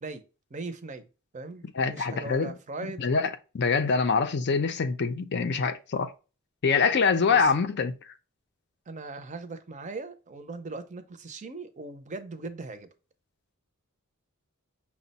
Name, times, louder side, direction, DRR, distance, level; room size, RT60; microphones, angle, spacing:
voice 1, 0.5-1.1 1.3-3.1 7.3-7.5 8.9-12.9, right 3 dB, 35° right, 0.5 m, -39 dB
voice 2, 1.8-2.5 3.0-6.1 6.6-7.9, left 5 dB, 50° left, 0.5 m, -25 dB
5.9 x 2.1 x 4.0 m
head